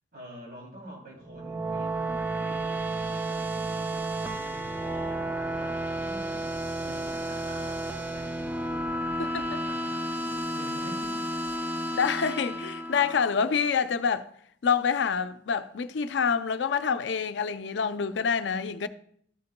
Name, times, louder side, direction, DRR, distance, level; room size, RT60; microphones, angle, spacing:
voice 1, 0.1-11.3, right 1 dB, 55° right, 2.9 m, -47 dB
sound 1, 1.2-13.6, right 1 dB, 10° right, 0.5 m, -32 dB
voice 2, 9.2-9.6 11.9-14.3 14.6-18.9, left 6 dB, 75° left, 0.4 m, -27 dB
13.0 x 6.6 x 2.2 m
head